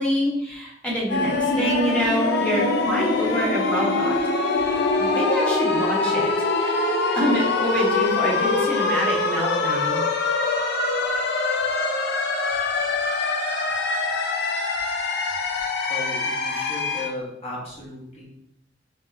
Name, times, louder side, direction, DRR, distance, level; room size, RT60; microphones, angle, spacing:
voice 1, 0.0-4.1 4.6-4.7 5.0-6.3 6.6-6.8 7.1-10.0, equal, 5° left, -6 dB, 1.4 m, -26 dB
sound 1, 1.1-17.1, left 3 dB, 60° left, 0.6 m, -24 dB
voice 2, 15.9-18.3, left 2 dB, 35° left, -6 dB, 1.7 m, -35 dB
4.7 x 3.7 x 2.8 m, 0.77 s
head